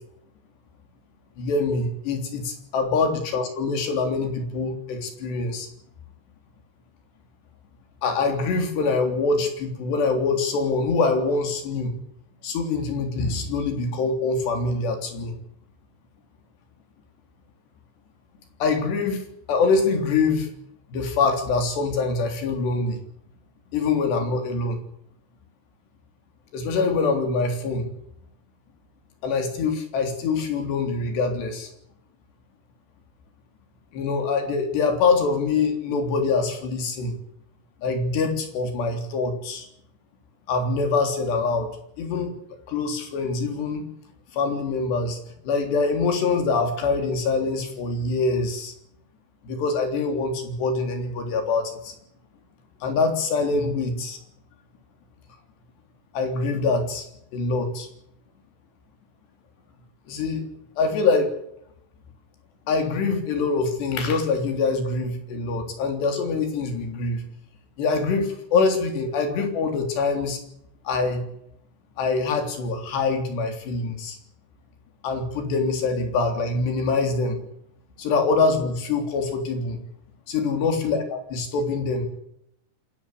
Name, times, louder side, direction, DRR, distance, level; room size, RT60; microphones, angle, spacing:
voice 1, 1.4-5.7 8.0-11.9 12.4-15.3 18.6-20.5 20.9-23.0 23.7-24.8 26.5-27.9 29.2-31.7 33.9-37.1 37.8-39.7 40.5-41.7 42.0-42.3 42.7-43.9 44.3-45.2 45.5-48.7 49.4-52.0 52.8-54.2 56.1-57.1 57.3-57.9 60.1-60.5 60.8-61.3 62.7-67.2 67.8-70.4 70.9-71.2 72.0-74.2 75.0-77.4 78.0-79.8 80.3-82.1, left 4 dB, 80° left, 6 dB, 5.6 m, -24 dB
26.5 x 14.5 x 8.4 m, 0.73 s
omnidirectional pair, 4.9 m